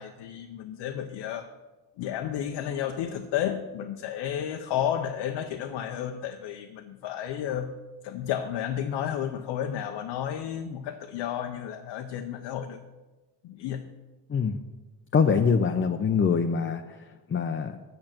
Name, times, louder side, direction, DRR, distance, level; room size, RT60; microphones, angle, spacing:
voice 1, 0.0-1.5 2.0-7.7 8.0-12.8 13.4-13.8, left 9 dB, 85° left, 6 dB, 0.7 m, -32 dB
voice 2, 15.1-17.8, left 6 dB, 30° left, 6 dB, 0.5 m, -24 dB
7.6 x 6.6 x 5.8 m, 1.2 s
cardioid pair, 70°, 42 cm